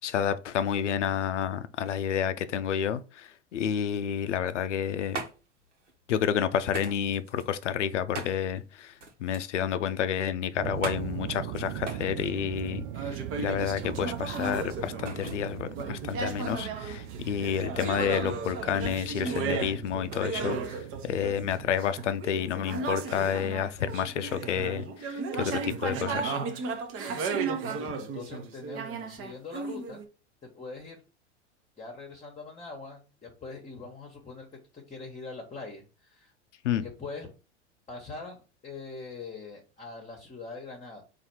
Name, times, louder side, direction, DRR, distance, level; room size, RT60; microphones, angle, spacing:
voice 1, 0.0-5.2 6.1-8.9 9.2-26.4 36.6-36.8, left 9 dB, 85° left, 0.5 m, -30 dB
sound 1, 4.7-21.2, right 3 dB, 90° right, 1.1 m, -44 dB
sound 2, 10.6-21.8, right 12 dB, 55° right, 0.5 m, -40 dB
sound 3, 11.5-12.4 12.9-15.4 15.7-30.0, right 5 dB, 40° right, 0.9 m, -35 dB
voice 2, 27.7-28.8 29.1-30.0 30.5-31.0 31.8-34.5 34.7-36.3 36.7-37.3 37.9-41.0, left 4 dB, 20° left, 1.1 m, -42 dB
4.1 x 2.6 x 4.3 m
hypercardioid pair, 95°, 35 cm